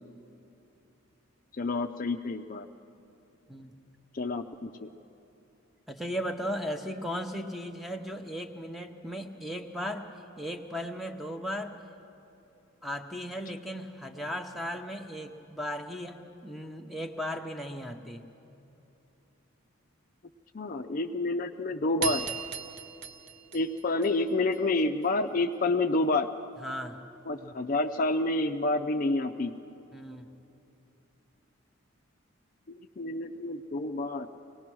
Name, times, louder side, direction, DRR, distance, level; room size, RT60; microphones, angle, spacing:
voice 1, 1.5-2.7 4.1-4.9 20.5-22.3 23.5-26.3 27.3-29.5 33.0-34.3, left 2 dB, 40° left, 6 dB, 0.5 m, -29 dB
voice 2, 5.9-10.1 10.4-11.7 12.8-18.2 26.6-27.0 29.9-30.3, equal, ahead, 4 dB, 0.8 m, -36 dB
sound 1, 22.0-24.6, right 7 dB, 60° right, 1.2 m, -37 dB
23.5 x 18.5 x 6.1 m, 2.9 s
head